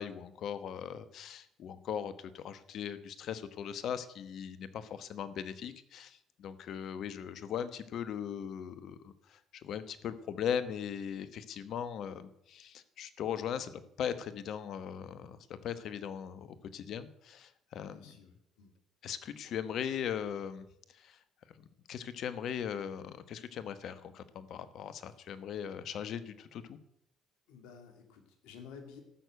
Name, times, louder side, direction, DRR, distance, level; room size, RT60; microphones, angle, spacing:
voice 1, 0.0-18.2 19.0-21.2 21.9-26.8, left 8 dB, 65° left, 13 dB, 1.1 m, -39 dB
voice 2, 17.9-18.7 27.5-29.0, left 6 dB, 80° left, 5 dB, 2.3 m, -52 dB
13.0 x 6.4 x 7.9 m, 0.77 s
hypercardioid pair, 65°, 0 cm